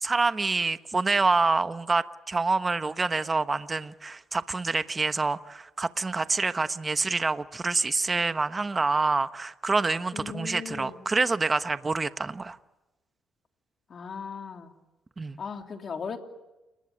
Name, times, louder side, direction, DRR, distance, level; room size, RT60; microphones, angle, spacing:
voice 1, 0.0-12.6 15.2-15.4, right 3 dB, 25° right, 11 dB, 1.1 m, -27 dB
voice 2, 10.1-11.0 13.9-14.7 15.4-16.2, left 5 dB, 50° left, 4 dB, 3.1 m, -37 dB
29.5 x 20.0 x 9.5 m, 1.0 s
cardioid pair, 90°, 0 cm